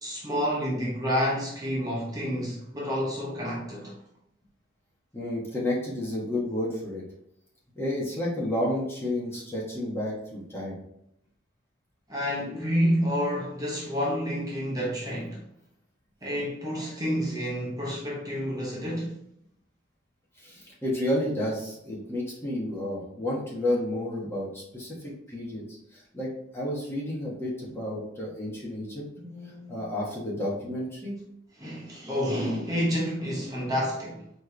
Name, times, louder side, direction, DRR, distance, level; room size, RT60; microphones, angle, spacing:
voice 1, 0.0-3.9 12.1-15.4 16.2-19.1 29.2-29.8 31.6-34.2, equal, 20° right, -5 dB, 1.0 m, -29 dB
voice 2, 5.1-7.0 7.8-10.8 20.4-29.0 29.7-31.1, left 1 dB, 15° left, -5 dB, 1.2 m, -31 dB
4.5 x 3.1 x 3.3 m, 0.76 s
head